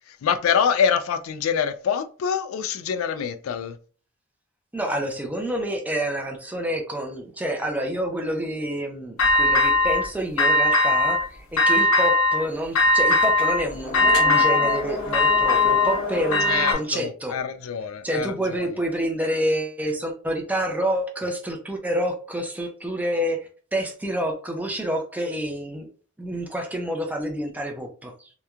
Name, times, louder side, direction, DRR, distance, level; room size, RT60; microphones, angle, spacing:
voice 1, 0.1-3.8 16.5-18.7, left 7 dB, 75° left, 0.3 m, -25 dB
voice 2, 4.7-17.4 18.0-25.9 26.2-28.3, equal, 10° right, 0.4 m, -28 dB
sound 1, 9.2-10.0 10.4-11.2 11.6-12.4 12.7-16.7, left 2 dB, 90° left, 0.8 m, -19 dB
2.9 x 2.2 x 2.3 m
head